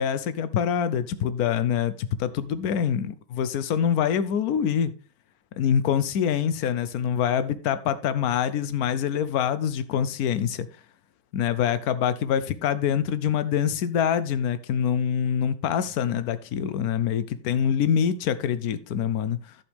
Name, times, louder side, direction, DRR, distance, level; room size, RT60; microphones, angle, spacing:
voice 1, 0.0-4.9 5.6-10.7 11.3-19.6, left 8 dB, 75° left, 0.8 m, -25 dB
11.5 x 7.2 x 3.3 m
omnidirectional pair, 2.3 m